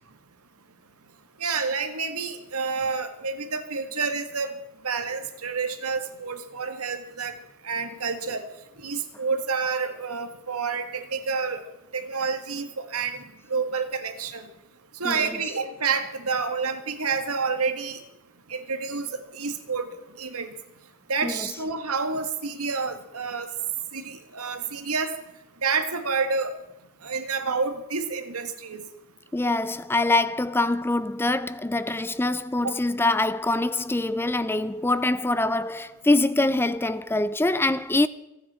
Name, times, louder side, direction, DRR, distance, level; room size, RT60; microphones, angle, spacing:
voice 1, 1.4-4.5 4.8-7.3 7.6-8.4 8.8-11.6 11.9-13.2 13.5-14.5 15.0-18.0 18.5-19.9 20.2-20.5 21.1-23.5 23.9-25.2 25.6-26.5 27.0-28.8 32.6-32.7, right 5 dB, 85° right, 1.9 m, -29 dB
voice 2, 15.0-15.4 21.2-21.5 29.3-38.1, left 2 dB, 10° left, 0.4 m, -24 dB
29.5 x 9.8 x 4.4 m
head